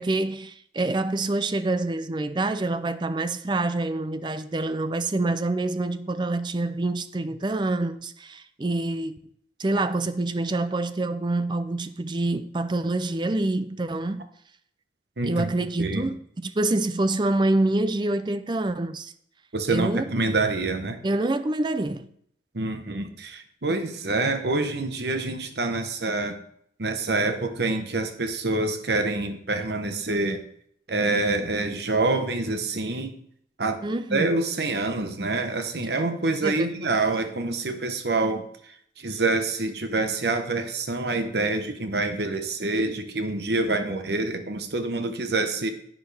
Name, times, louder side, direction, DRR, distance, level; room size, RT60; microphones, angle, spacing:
voice 1, 0.0-9.2 9.6-14.3 15.2-19.1 19.7-20.0 21.0-22.1 33.8-34.3 36.4-37.0, right 2 dB, 25° right, 0.4 m, -26 dB
voice 2, 15.2-15.5 15.8-16.1 19.5-21.0 22.5-26.4 26.8-30.4 30.9-33.1 33.6-33.8 34.1-38.5 39.0-45.7, right 2 dB, 65° right, 1.0 m, -26 dB
10.5 x 8.8 x 3.4 m
head